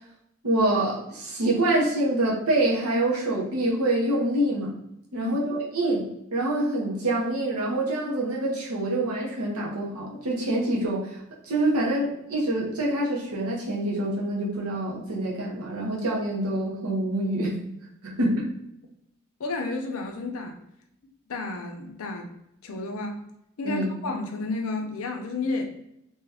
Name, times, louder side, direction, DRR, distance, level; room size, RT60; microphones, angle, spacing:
voice 1, 0.4-4.7 5.1-6.0 6.3-11.1 11.4-17.5 18.0-18.5 23.6-23.9, right 1 dB, 85° right, -4 dB, 0.9 m, -26 dB
voice 2, 19.4-20.5 21.3-22.3 22.6-23.2 23.6-25.7, left 3 dB, 75° left, 3 dB, 0.6 m, -31 dB
2.8 x 2.3 x 3.4 m, 0.80 s
head